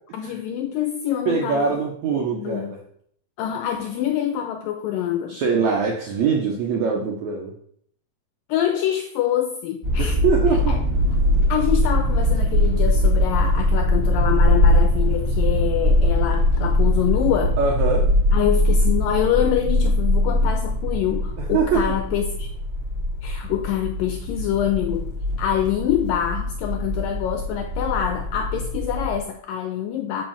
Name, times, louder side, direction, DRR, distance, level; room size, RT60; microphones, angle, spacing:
voice 1, 0.1-1.8 2.1-2.8 3.4-5.4 8.5-10.2 10.7-10.8 11.5-17.6 18.3-22.5 23.2-25.1 25.4-30.2, left 10 dB, 80° left, 6 dB, 2.0 m, -25 dB
voice 2, 1.3-2.8 5.3-7.5 10.0-10.8 17.6-18.0 21.5-21.8, right 5 dB, 75° right, -1 dB, 1.7 m, -23 dB
sound 1, 9.8-29.2, left 1 dB, 25° right, 1.6 m, -21 dB
6.0 x 5.6 x 7.0 m, 0.66 s
omnidirectional pair, 4.6 m